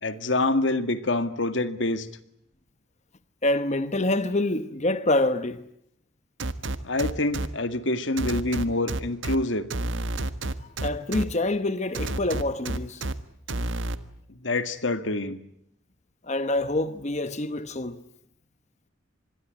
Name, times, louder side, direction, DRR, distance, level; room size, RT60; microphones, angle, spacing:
voice 1, 0.0-2.1 6.8-9.7 14.4-15.4, left 2 dB, 80° left, 1.9 m, -26 dB
voice 2, 3.4-5.6 10.6-13.0 16.2-18.0, left 2 dB, 35° left, 1.0 m, -26 dB
sound 1, 6.4-7.5 8.2-9.4 9.7-11.2 11.9-13.1 13.5-14.0, right 2 dB, 85° right, 1.5 m, -29 dB
26.5 x 21.5 x 9.3 m
head